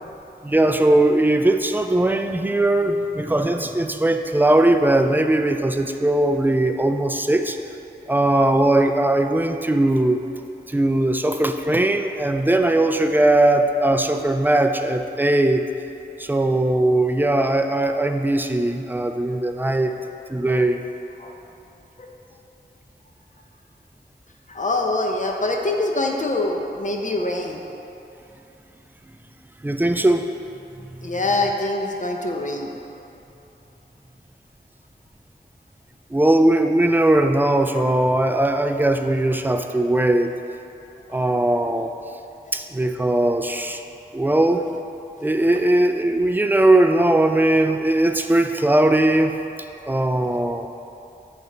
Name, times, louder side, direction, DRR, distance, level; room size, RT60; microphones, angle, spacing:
voice 1, 0.4-7.6 8.1-10.2 10.7-15.6 16.2-19.9 20.3-20.8 29.6-30.3 30.8-30.9 36.1-40.3 41.1-41.9 42.5-43.8 44.1-44.7 45.2-49.4 49.9-50.7, right 1 dB, 10° right, 6 dB, 0.3 m, -19 dB
voice 2, 24.5-27.6 31.0-32.8 41.1-41.2, left 2 dB, 45° left, 1 dB, 0.6 m, -24 dB
8.6 x 3.3 x 3.9 m, 2.9 s
wide cardioid pair, 65°, 18 cm